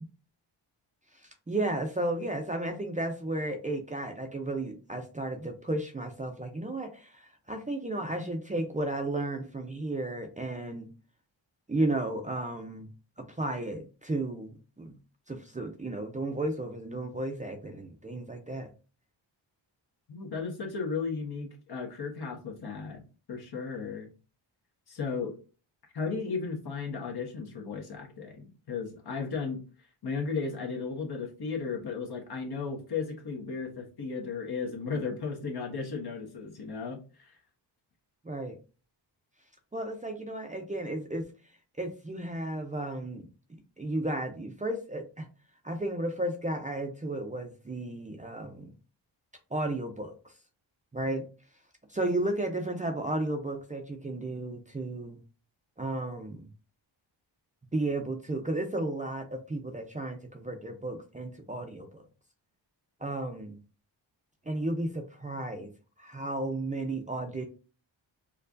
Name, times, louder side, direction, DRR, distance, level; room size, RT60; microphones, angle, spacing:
voice 1, 1.2-10.9 11.7-12.9 13.2-14.9 15.3-18.7 38.2-38.6 39.7-41.3 41.8-43.3 43.8-45.3 45.6-48.7 49.5-50.3 50.9-51.3 51.9-55.2 55.8-56.5 57.7-62.1 63.0-63.6 64.5-65.7 66.0-67.4, right 2 dB, 15° right, 4 dB, 0.6 m, -33 dB
voice 2, 20.1-23.0 23.3-24.1 24.9-25.4 25.9-29.6 30.0-37.4, left 5 dB, 55° left, 1 dB, 1.2 m, -35 dB
4.5 x 2.3 x 2.6 m, 0.34 s
cardioid pair, 75°, 47 cm